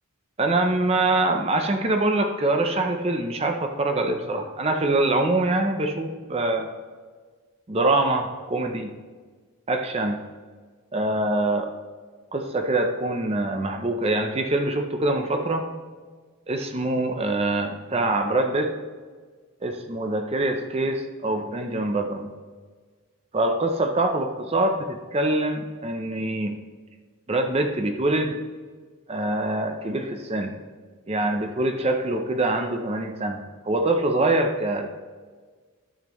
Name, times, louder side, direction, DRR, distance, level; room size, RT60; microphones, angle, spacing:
voice 1, 0.4-6.7 7.7-8.9 9.7-10.2 10.9-11.7 12.3-15.7 16.5-18.7 19.6-22.3 23.3-24.7 25.1-26.6 27.3-28.4 29.1-30.5 31.1-33.4 33.7-34.9, right 2 dB, 25° right, 5 dB, 0.6 m, -24 dB
11.0 x 7.3 x 3.1 m, 1.5 s
head